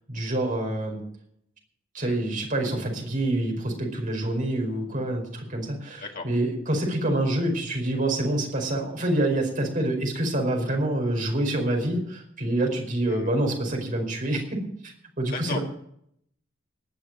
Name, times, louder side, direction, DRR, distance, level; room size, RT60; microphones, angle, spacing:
voice 1, 0.1-1.0 1.9-14.4 14.8-15.6, right 1 dB, 40° right, 1 dB, 4.9 m, -26 dB
voice 2, 2.0-2.2 6.0-6.3 13.1-13.3 15.3-15.6, left 4 dB, 45° left, 2 dB, 2.2 m, -36 dB
19.5 x 6.5 x 7.5 m, 0.69 s
head